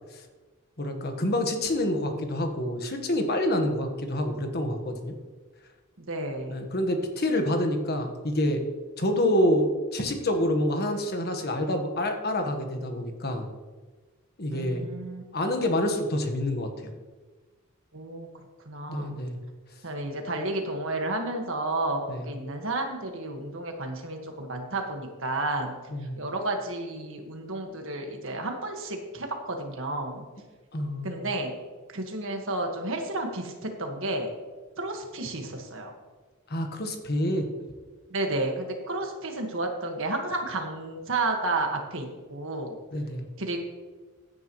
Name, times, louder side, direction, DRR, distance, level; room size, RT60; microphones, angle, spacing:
voice 1, 0.8-5.1 6.5-8.6 9.0-13.5 14.4-14.9 15.3-16.9 18.9-19.4 22.1-22.3 25.9-26.1 30.7-31.3 36.5-37.5 42.9-43.2, left 1 dB, 45° left, 4 dB, 1.4 m, -27 dB
voice 2, 6.0-6.7 14.5-15.2 17.9-18.3 18.7-19.2 19.8-25.7 26.2-30.3 31.0-31.5 31.9-34.3 34.8-35.9 38.1-42.8 43.4-43.6, right 2 dB, 60° right, 3 dB, 1.7 m, -31 dB
15.5 x 9.8 x 3.1 m, 1.4 s
head